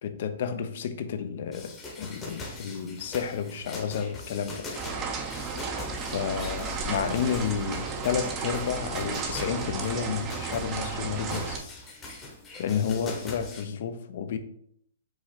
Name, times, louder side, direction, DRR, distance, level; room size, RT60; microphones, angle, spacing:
voice 1, 0.0-5.0 6.1-11.6 12.6-14.4, left 7 dB, 55° left, 0.5 m, -31 dB
sound 1, 1.5-13.6, left 2 dB, 15° left, 0.9 m, -42 dB
sound 2, 4.7-11.6, right 4 dB, 25° right, 0.6 m, -33 dB
4.8 x 2.4 x 4.3 m
hypercardioid pair, 150°, 0 cm